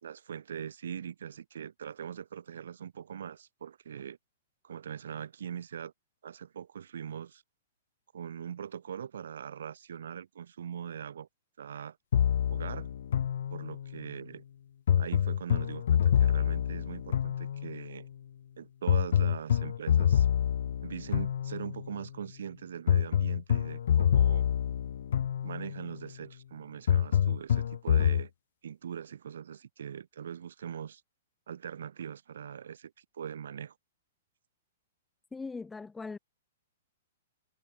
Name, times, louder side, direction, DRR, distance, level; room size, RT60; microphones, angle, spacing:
voice 1, 0.0-4.2 4.6-5.9 6.2-7.4 8.1-11.3 11.6-12.0 12.5-12.9 13.5-14.4 15.0-18.1 18.6-20.3 20.8-24.5 25.4-28.3 28.6-31.0 31.5-33.7, right 8 dB, 65° right, 1.5 m, -41 dB
sound 1, 12.1-14.0 14.9-17.9 18.9-22.0 22.9-25.9 26.9-28.3, left 9 dB, 60° left, 0.6 m, -27 dB
voice 2, 35.3-36.2, left 4 dB, 10° left, 0.8 m, -40 dB
figure-of-eight pair, 110°, 0 cm